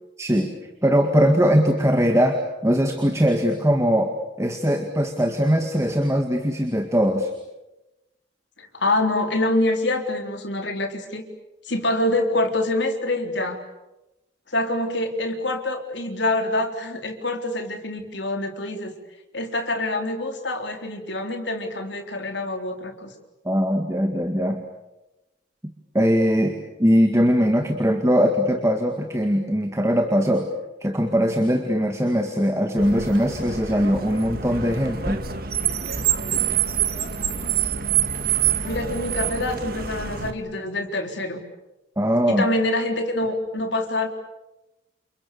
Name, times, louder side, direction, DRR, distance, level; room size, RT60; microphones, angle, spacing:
voice 1, 0.2-4.1 4.4-7.3 23.4-24.6 25.9-30.5 30.8-35.2 42.0-42.5, equal, 15° right, 5 dB, 2.0 m, -21 dB
voice 2, 8.6-11.2 11.7-13.6 14.5-18.9 19.3-23.1 38.6-41.4 42.3-44.1, left 2 dB, 65° left, 5 dB, 3.9 m, -25 dB
Car, 32.8-40.3, right 9 dB, 50° right, 1.8 m, -26 dB
29.5 x 28.5 x 7.0 m, 0.98 s
head